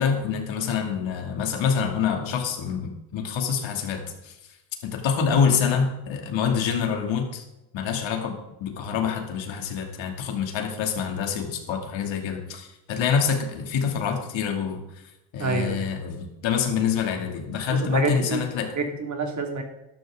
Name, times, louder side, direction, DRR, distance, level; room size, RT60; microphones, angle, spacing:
voice 1, 0.0-4.4 4.8-7.4 7.7-15.0 15.3-18.7, left 6 dB, 70° left, 3 dB, 2.8 m, -26 dB
voice 2, 15.4-15.8 17.7-18.4 18.7-19.6, right 3 dB, 35° right, 3 dB, 2.7 m, -27 dB
13.5 x 12.0 x 3.8 m, 0.92 s
cardioid pair, 130°, 48 cm